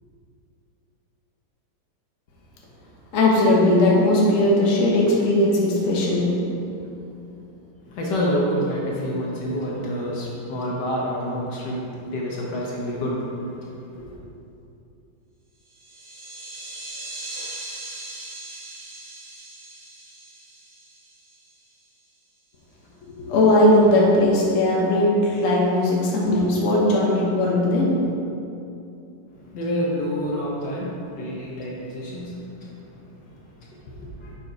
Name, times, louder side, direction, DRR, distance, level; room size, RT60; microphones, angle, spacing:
voice 1, 3.1-6.3 23.2-27.9, left 1 dB, 45° left, -4 dB, 1.4 m, -18 dB
voice 2, 7.8-14.2 29.3-34.4, equal, 65° left, -4 dB, 1.6 m, -28 dB
sound 1, 15.7-21.7, right 2 dB, 70° right, 2.3 m, -39 dB
7.6 x 4.5 x 4.8 m, 2.7 s
omnidirectional pair, 2.1 m